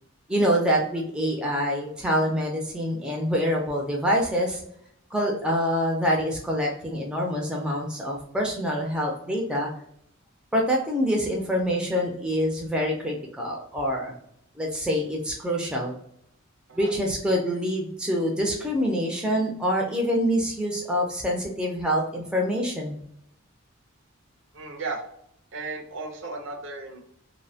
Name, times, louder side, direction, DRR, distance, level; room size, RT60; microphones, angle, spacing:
voice 1, 0.3-4.6 5.1-9.7 10.5-14.1 14.6-15.9 16.7-23.0, equal, 5° right, -2 dB, 0.4 m, -26 dB
voice 2, 24.5-25.0 25.5-27.0, right 3 dB, 60° right, 3 dB, 0.5 m, -35 dB
2.5 x 2.0 x 2.6 m, 0.70 s
head